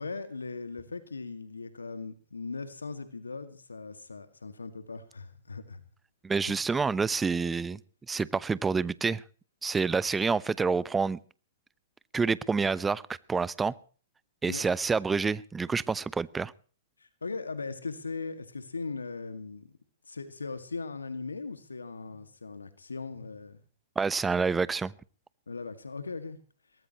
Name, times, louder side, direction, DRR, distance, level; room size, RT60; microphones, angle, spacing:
voice 1, 0.0-5.9 6.5-6.6 14.5-14.6 17.0-19.7 20.1-23.6 25.5-26.4, left 4 dB, 85° left, 2.0 m, -39 dB
voice 2, 6.2-7.8 8.1-9.2 9.6-11.2 12.1-13.0 13.3-13.7 14.4-16.5 24.0-24.9, right 4 dB, 10° right, 0.8 m, -28 dB
22.5 x 19.0 x 3.0 m
figure-of-eight pair, 115°, 0 cm